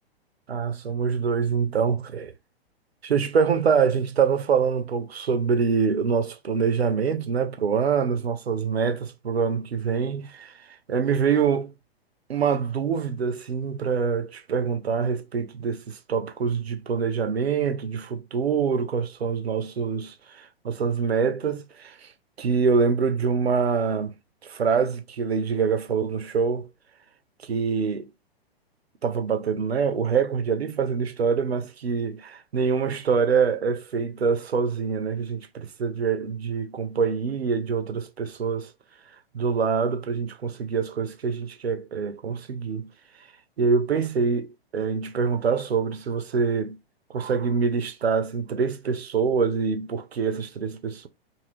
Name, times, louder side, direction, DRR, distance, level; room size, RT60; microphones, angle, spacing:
voice 1, 0.5-2.3 3.0-11.7 12.3-22.1 22.4-24.1 24.4-26.7 27.4-28.1 29.0-38.7 39.3-42.9 43.6-46.8 47.1-51.1, right 5 dB, 75° right, 0.7 m, -25 dB
2.7 x 2.5 x 3.1 m
figure-of-eight pair, 110°, 31 cm